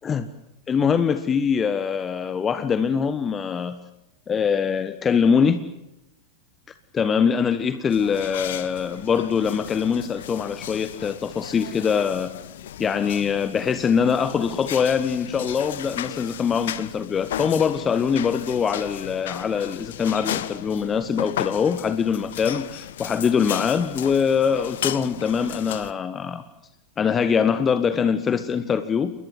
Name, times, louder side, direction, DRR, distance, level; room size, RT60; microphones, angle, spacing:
voice 1, 0.7-3.8 4.3-5.6 6.9-12.3 12.8-26.4 27.0-29.1, left 6 dB, 20° left, 11 dB, 1.4 m, -23 dB
sound 1, 7.9-25.9, left 11 dB, 60° left, 1.2 m, -35 dB
30.0 x 21.0 x 7.7 m, 0.88 s
figure-of-eight pair, 90°, 0 cm